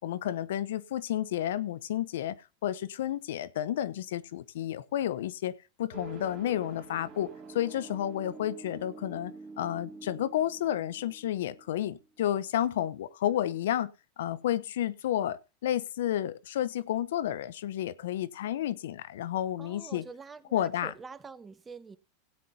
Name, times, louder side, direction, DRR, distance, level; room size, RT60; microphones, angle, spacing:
voice 1, 0.0-2.4 2.6-13.9 14.2-20.0 20.5-20.9, left 11 dB, 75° left, 0.7 m, -31 dB
sound 1, 5.9-12.3, right 4 dB, 35° right, 2.4 m, -47 dB
voice 2, 19.6-22.0, right 4 dB, 20° right, 1.0 m, -46 dB
17.0 x 9.3 x 2.8 m
hypercardioid pair, 105°, 0 cm